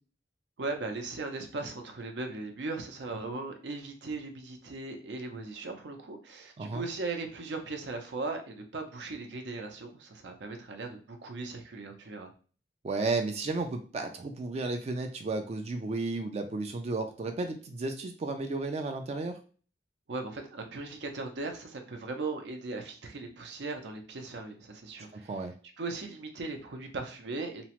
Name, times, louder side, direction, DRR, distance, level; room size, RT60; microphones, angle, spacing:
voice 1, 0.6-12.3 20.1-25.3 25.8-27.7, right 3 dB, 75° right, 0.6 m, -38 dB
voice 2, 12.8-19.4 25.1-25.5, right 3 dB, 35° right, 0.3 m, -33 dB
2.9 x 2.0 x 2.9 m
head